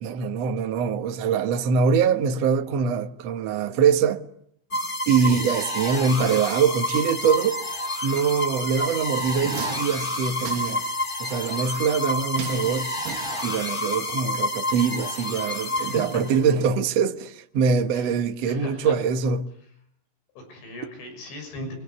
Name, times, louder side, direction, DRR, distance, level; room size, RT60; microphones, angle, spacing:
voice 1, 0.0-4.2 5.1-7.6 8.0-10.8 11.2-12.9 13.4-19.5, right 6 dB, 90° right, 1.4 m, -23 dB
sound 1, 4.7-16.5, left 1 dB, 25° left, 1.0 m, -29 dB
voice 2, 5.0-5.4 15.8-16.1 17.9-18.1 18.5-18.9 20.4-21.7, left 1 dB, 75° left, 8.7 m, -38 dB
sound 2, 8.9-11.0 12.4-13.8 14.1-14.2, right 8 dB, 55° right, 3.2 m, -38 dB
24.5 x 24.5 x 9.6 m
omnidirectional pair, 5.3 m